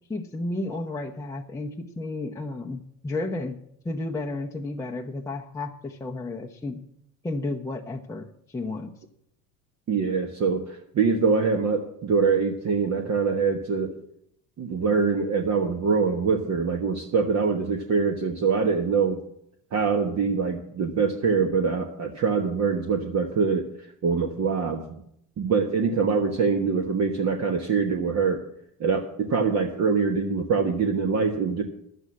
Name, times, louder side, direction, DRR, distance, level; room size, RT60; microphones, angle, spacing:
voice 1, 0.1-3.6 3.8-6.8 7.2-8.9, left 2 dB, 5° left, 0 dB, 0.8 m, -32 dB
voice 2, 9.9-14.0 14.6-19.2 19.7-23.7 24.0-25.0 25.4-28.4 28.8-31.6, right 5 dB, 35° right, 4 dB, 1.3 m, -24 dB
11.0 x 8.1 x 7.6 m, 0.73 s
hypercardioid pair, 70°, 46 cm